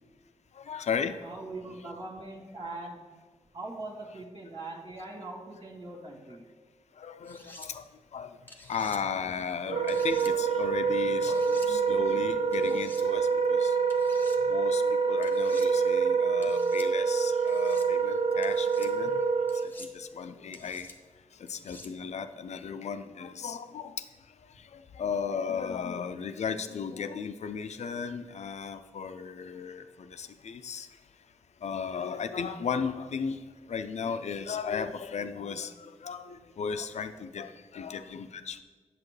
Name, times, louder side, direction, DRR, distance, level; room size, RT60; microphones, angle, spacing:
voice 1, 0.5-1.3 1.7-1.9 7.0-7.8 8.1-8.4 8.7-13.8 14.5-19.2 19.5-20.9 21.3-24.0 24.6-30.9 31.6-33.4 33.7-38.6, left 6 dB, 70° left, 10 dB, 0.5 m, -35 dB
voice 2, 1.2-3.0 3.5-6.4, right 2 dB, 55° right, -6 dB, 1.6 m, -41 dB
sound 1, 7.2-7.7 8.5-9.0 9.9-10.3 11.2-11.7 12.5-13.0 13.9-14.4 15.2-15.7 16.4-16.9 17.5-17.9 18.4-18.9 19.5-19.9 20.5-21.0 21.5-21.9, left 1 dB, 15° left, 0.9 m, -49 dB
Wind instrument woodwind instrument, 9.6-19.7, right 5 dB, 70° right, 0.5 m, -26 dB
8.4 x 6.8 x 3.2 m, 1.4 s
cardioid pair, 55°, 12 cm